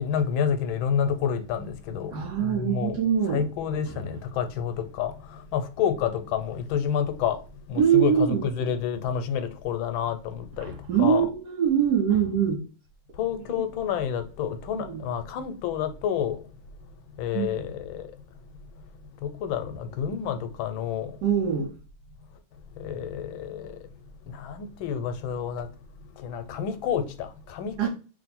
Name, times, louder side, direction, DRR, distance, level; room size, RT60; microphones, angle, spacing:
voice 1, 0.0-3.0 3.3-7.4 7.7-11.3 13.2-16.4 17.2-18.1 19.2-21.2 22.8-23.8 24.3-25.7 26.2-27.9, left 8 dB, 90° left, 1.4 m, -29 dB
voice 2, 2.1-3.5 3.9-4.0 7.8-8.4 10.6-12.6 14.7-15.0 17.3-17.7 21.2-21.7 27.8-27.9, right 8 dB, 70° right, 1.1 m, -23 dB
3.3 x 2.5 x 4.0 m
omnidirectional pair, 2.2 m